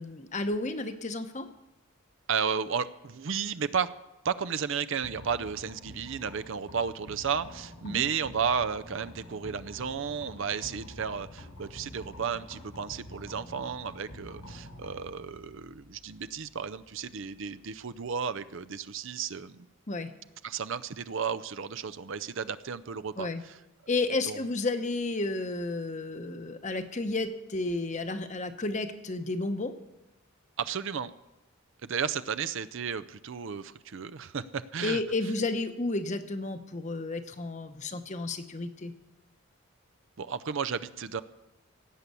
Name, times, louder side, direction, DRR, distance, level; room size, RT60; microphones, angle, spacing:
voice 1, 0.0-1.5 7.8-8.0 19.9-20.1 23.2-23.4 23.9-29.7 34.8-38.9, left 2 dB, 30° left, 9 dB, 0.9 m, -32 dB
voice 2, 2.3-3.9 4.2-19.7 20.4-23.6 24.2-24.5 30.6-31.1 31.8-35.0 40.2-41.2, right 6 dB, 55° right, 13 dB, 0.5 m, -33 dB
sound 1, 5.0-18.9, left 1 dB, 90° left, 5.8 m, -48 dB
17.0 x 8.4 x 6.8 m, 0.98 s
head